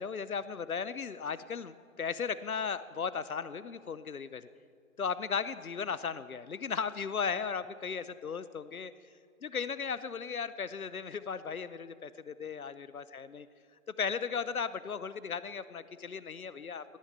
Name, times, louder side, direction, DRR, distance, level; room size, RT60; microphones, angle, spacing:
voice 1, 0.0-4.5 5.0-8.9 9.4-13.5 14.0-16.8, left 6 dB, 80° left, 15 dB, 0.9 m, -36 dB
18.0 x 9.4 x 8.1 m, 2.2 s
figure-of-eight pair, 135°, 43 cm